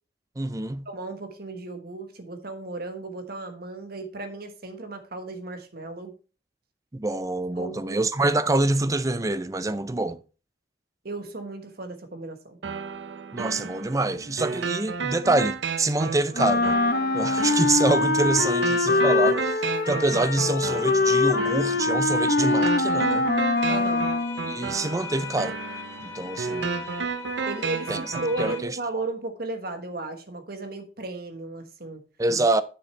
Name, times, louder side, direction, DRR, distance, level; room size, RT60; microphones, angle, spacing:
voice 1, 0.4-0.9 6.9-10.2 13.3-16.8 17.1-23.3 24.5-25.6 26.0-26.9 27.9-28.0 28.4-29.0 32.2-32.6, right 2 dB, 20° right, 0.5 m, -26 dB
voice 2, 0.9-6.1 7.6-8.0 11.0-12.6 23.7-24.1 27.5-32.0, right 2 dB, 60° right, 1.4 m, -35 dB
sound 1, 12.6-28.6, right 5 dB, 80° right, 0.6 m, -32 dB
Wind instrument woodwind instrument, 16.3-24.5, left 3 dB, 60° left, 0.9 m, -23 dB
sound 2, 23.6-28.6, left 6 dB, 15° left, 2.0 m, -39 dB
9.8 x 6.7 x 3.3 m
head